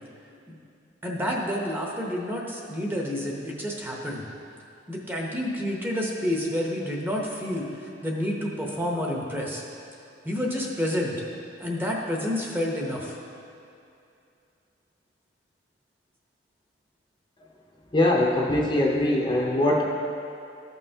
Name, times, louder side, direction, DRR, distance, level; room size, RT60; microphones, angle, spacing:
voice 1, 1.0-4.2 4.9-9.6 10.2-11.2 11.6-13.2, left 1 dB, 10° right, -2 dB, 0.8 m, -29 dB
voice 2, 17.9-19.8, left 1 dB, 25° left, -1 dB, 0.6 m, -22 dB
14.0 x 5.5 x 2.8 m, 2.6 s
head